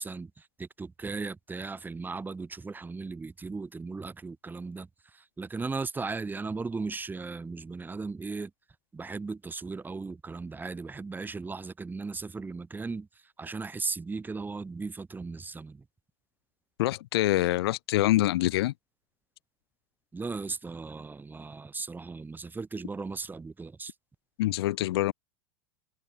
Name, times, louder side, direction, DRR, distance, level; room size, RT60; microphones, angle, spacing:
voice 1, 0.0-8.5 8.9-15.8 20.1-23.9, right 4 dB, 15° right, 5.4 m, -37 dB
voice 2, 16.8-18.7 24.4-25.1, left 16 dB, 75° left, 2.2 m, -25 dB
hypercardioid pair, 110°, 13 cm